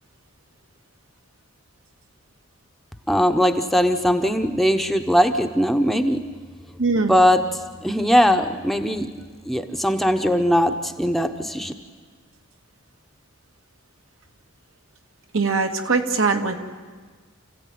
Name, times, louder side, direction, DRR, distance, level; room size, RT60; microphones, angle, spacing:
voice 1, 3.1-6.2 6.9-7.4 7.8-9.1 9.4-11.7, equal, ahead, 6 dB, 0.9 m, -20 dB
voice 2, 6.8-7.1 15.3-16.5, right 4 dB, 70° right, 4 dB, 2.0 m, -21 dB
29.5 x 15.5 x 9.4 m, 1.5 s
head